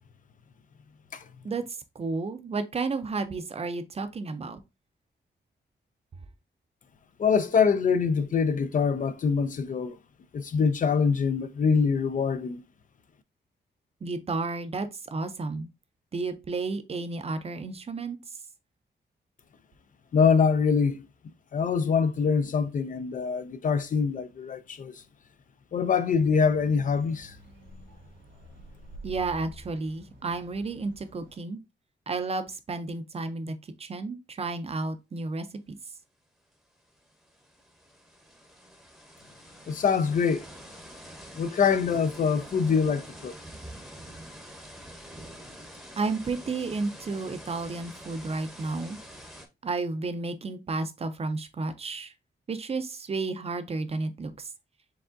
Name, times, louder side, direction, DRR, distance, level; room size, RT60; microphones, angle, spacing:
voice 1, 2.0-4.6 14.0-15.7 16.1-18.2 29.0-31.6 32.1-33.5 33.8-35.8 46.0-49.0 49.6-52.1 52.5-54.5, right 3 dB, 35° right, 0.5 m, -32 dB
voice 2, 7.2-10.0 10.3-12.6 20.1-21.0 21.5-25.0 25.7-27.4 39.7-40.4 41.3-43.3, left 6 dB, 45° left, 0.4 m, -24 dB
sound 1, 26.1-31.4, right 1 dB, 85° right, 1.3 m, -49 dB
sound 2, 36.5-36.6 36.9-49.5, equal, ahead, 0.8 m, -46 dB
4.7 x 3.5 x 2.5 m
wide cardioid pair, 145°, 18 cm